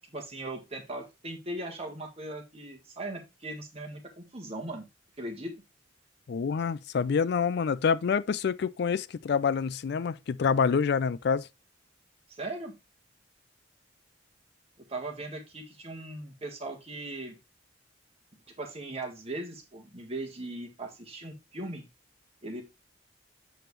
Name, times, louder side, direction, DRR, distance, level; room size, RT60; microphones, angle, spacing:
voice 1, 0.1-4.9 5.2-5.5 12.3-12.7 14.9-17.4 18.6-21.8 22.4-22.6, right 2 dB, 30° right, 1.8 m, -39 dB
voice 2, 6.3-11.5, left 6 dB, 60° left, 0.4 m, -27 dB
7.1 x 6.0 x 3.2 m
head